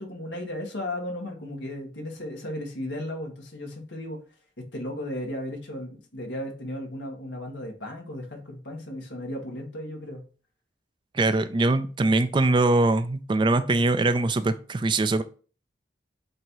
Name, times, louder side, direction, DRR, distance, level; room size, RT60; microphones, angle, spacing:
voice 1, 0.0-4.2 4.6-10.2, left 1 dB, 80° left, 1 dB, 1.8 m, -35 dB
voice 2, 11.1-15.2, right 2 dB, 25° right, 12 dB, 0.4 m, -22 dB
7.5 x 2.8 x 4.7 m, 0.38 s
head